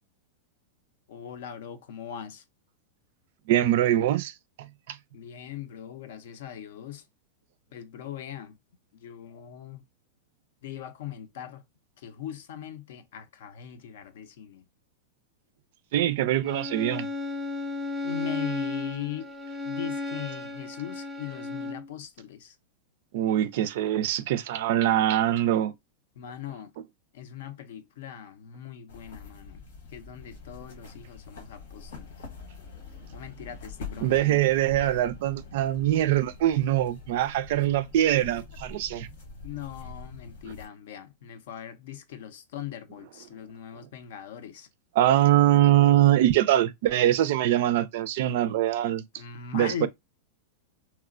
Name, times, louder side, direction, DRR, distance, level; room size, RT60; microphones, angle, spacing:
voice 1, 1.1-2.4 5.1-7.0 7.7-8.6 8.9-9.8 10.6-11.6 12.0-14.6 18.0-19.3 19.6-22.6 26.2-26.7 27.1-29.6 29.9-32.1 33.1-34.4 39.4-44.7 49.2-49.9, left 10 dB, 65° left, 0.5 m, -40 dB
voice 2, 3.5-5.0 15.9-17.1 23.1-25.7 34.0-39.1 45.0-49.0 49.5-49.9, right 12 dB, 60° right, 0.3 m, -23 dB
Bowed string instrument, 16.5-21.9, left 3 dB, ahead, 0.5 m, -34 dB
sound 1, 28.9-40.7, left 4 dB, 85° left, 1.1 m, -44 dB
2.9 x 2.1 x 2.4 m
supercardioid pair, 150°, 0 cm